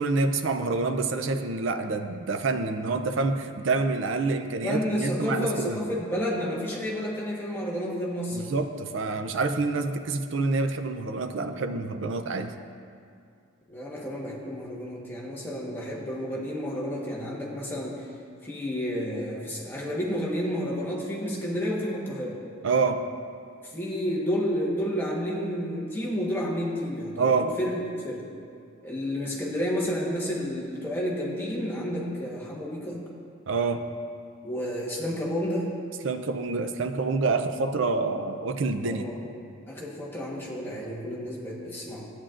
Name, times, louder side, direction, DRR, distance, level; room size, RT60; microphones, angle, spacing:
voice 1, 0.0-5.8 8.3-12.5 22.6-23.0 27.2-27.5 33.5-33.8 36.0-39.1, right 3 dB, 60° right, 7 dB, 0.5 m, -27 dB
voice 2, 4.6-8.4 13.7-18.1 18.4-22.4 23.6-28.3 28.8-33.0 34.4-35.7 38.8-39.2 39.7-42.1, equal, 10° left, -5 dB, 1.1 m, -31 dB
12.5 x 9.0 x 2.5 m, 2.4 s
head